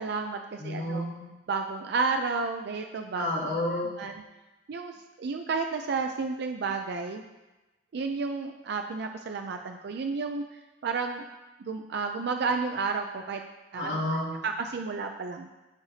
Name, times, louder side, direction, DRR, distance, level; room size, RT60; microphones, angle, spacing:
voice 1, 0.0-1.0 1.5-3.3 4.0-4.1 4.7-7.2 7.9-10.5 10.8-11.3 11.6-13.4 13.7-14.0 14.4-15.5, right 4 dB, 65° right, 5 dB, 0.4 m, -31 dB
voice 2, 0.6-1.3 3.1-4.1 13.8-14.3, left 1 dB, 80° left, -7 dB, 2.6 m, -31 dB
13.0 x 4.9 x 2.7 m, 1.1 s
head